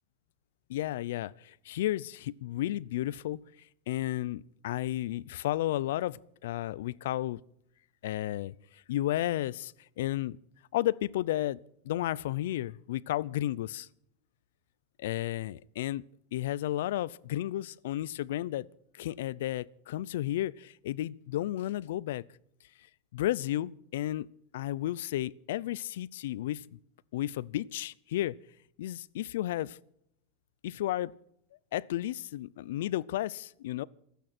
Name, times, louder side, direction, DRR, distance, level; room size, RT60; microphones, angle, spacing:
voice 1, 0.7-3.4 3.9-7.4 8.0-8.5 8.9-10.4 10.7-11.6 11.8-13.9 15.0-16.0 16.3-18.7 18.9-22.2 23.1-24.3 24.5-26.8 27.1-28.3 28.8-29.8 30.6-31.1 31.7-33.8, left 14 dB, 75° left, 0.5 m, -33 dB
28.0 x 9.3 x 4.4 m
supercardioid pair, 135°, 0 cm